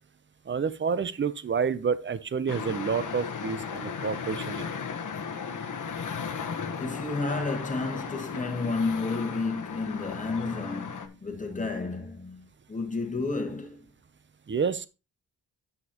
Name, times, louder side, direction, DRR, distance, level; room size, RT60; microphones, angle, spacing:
voice 1, 0.5-4.8 14.5-14.9, right 6 dB, 30° right, 0.6 m, -29 dB
sound 1, 2.5-11.1, left 6 dB, 50° left, 1.1 m, -36 dB
voice 2, 6.8-13.9, left 3 dB, 20° left, 1.7 m, -31 dB
9.7 x 7.2 x 2.9 m
wide cardioid pair, 150°, 40 cm